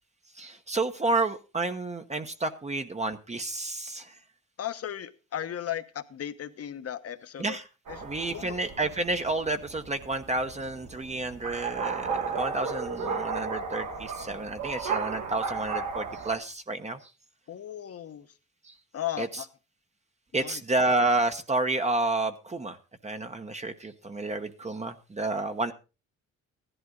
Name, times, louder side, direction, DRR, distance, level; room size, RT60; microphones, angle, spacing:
voice 1, 0.3-4.2 7.4-7.7 8.0-17.1 18.6-18.8 19.2-19.4 20.3-22.8 23.0-25.7, right 2 dB, 20° right, 7 dB, 1.0 m, -30 dB
voice 2, 4.6-7.6 7.9-8.0 8.3-8.6 17.5-18.3 18.9-19.5 20.3-20.6, left 11 dB, 55° left, 11 dB, 1.2 m, -36 dB
sound 1, 7.9-16.3, right 5 dB, 75° right, 2.2 m, -34 dB
15.0 x 11.0 x 3.9 m, 0.32 s
cardioid pair, 90°, 30 cm